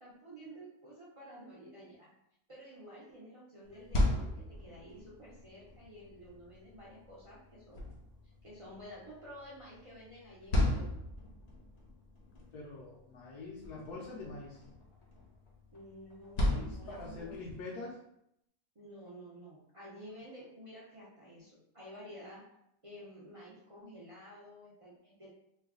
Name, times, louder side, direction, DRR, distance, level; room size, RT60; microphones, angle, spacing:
voice 1, 0.0-2.1 2.5-8.0 8.4-11.1 15.7-17.3 18.7-22.4 22.8-25.3, equal, 60° right, -8 dB, 0.3 m, -51 dB
sound 1, 3.6-17.6, left 1 dB, 50° left, 0.8 m, -37 dB
voice 2, 12.5-14.6 16.4-18.0, left 3 dB, 75° left, -4 dB, 1.2 m, -44 dB
3.1 x 2.2 x 3.5 m, 0.77 s
omnidirectional pair, 1.7 m